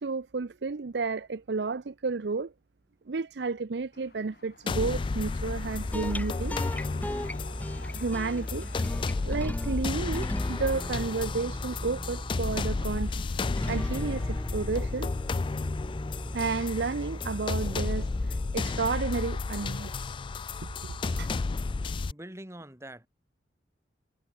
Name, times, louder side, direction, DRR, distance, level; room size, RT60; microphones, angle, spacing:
voice 1, 0.0-2.5 3.1-6.6 7.9-8.7 9.2-13.1 13.4-15.1 16.3-19.9 20.8-21.3, right 4 dB, 70° right, 0.6 m, -32 dB
sound 1, 3.9-14.4, left 3 dB, 60° left, 7.0 m, -53 dB
sound 2, 4.7-22.1, left 3 dB, 30° left, 0.3 m, -32 dB
sound 3, 5.6-19.1, equal, 10° left, 0.9 m, -37 dB
voice 2, 22.1-23.1, right 1 dB, 15° right, 2.3 m, -44 dB
head